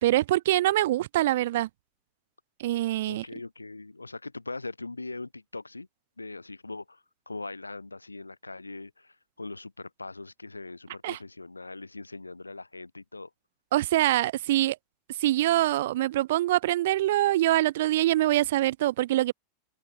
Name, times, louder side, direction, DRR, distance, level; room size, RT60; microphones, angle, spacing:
voice 1, 0.0-1.7 2.6-3.2 11.0-11.2 13.7-14.8 15.2-19.3, right 15 dB, 60° right, 1.3 m, -24 dB
voice 2, 3.1-5.9 6.2-13.3, left 3 dB, 85° left, 4.5 m, -41 dB
figure-of-eight pair, 90°, 0 cm